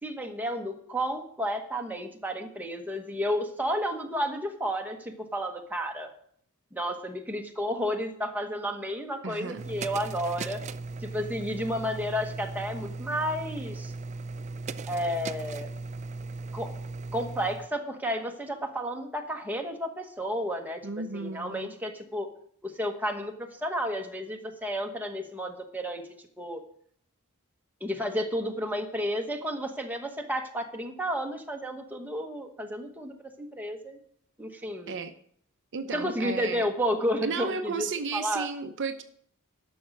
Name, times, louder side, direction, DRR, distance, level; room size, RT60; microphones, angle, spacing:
voice 1, 0.0-6.1 6.7-10.6 11.0-13.9 14.9-15.7 16.5-16.7 17.1-22.3 22.6-26.0 26.4-26.6 27.8-34.0 34.4-34.9 35.9-38.5, equal, 10° right, 2 dB, 1.1 m, -32 dB
voice 2, 9.2-9.6 20.8-21.7 34.9-35.1 35.7-36.7 37.2-39.0, right 5 dB, 55° right, 8 dB, 0.7 m, -34 dB
sound 1, 9.6-17.7, right 3 dB, 30° right, 0.3 m, -37 dB
11.5 x 6.1 x 6.5 m, 0.62 s
head